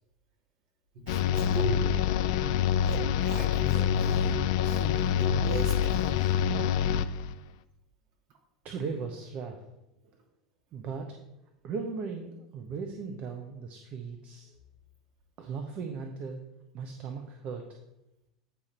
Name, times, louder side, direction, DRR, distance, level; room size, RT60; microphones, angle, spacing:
voice 1, 0.9-1.9 2.8-4.4 4.6-6.3, right 2 dB, 60° right, -1 dB, 2.7 m, -37 dB
sound 1, 1.1-7.3, left 8 dB, 65° left, 0.4 m, -26 dB
voice 2, 8.6-9.6 10.7-11.2 11.6-14.5 15.4-16.4 16.7-17.8, right 5 dB, 45° right, 4 dB, 0.9 m, -37 dB
8.7 x 5.1 x 4.3 m, 0.91 s
hypercardioid pair, 80°, 3 cm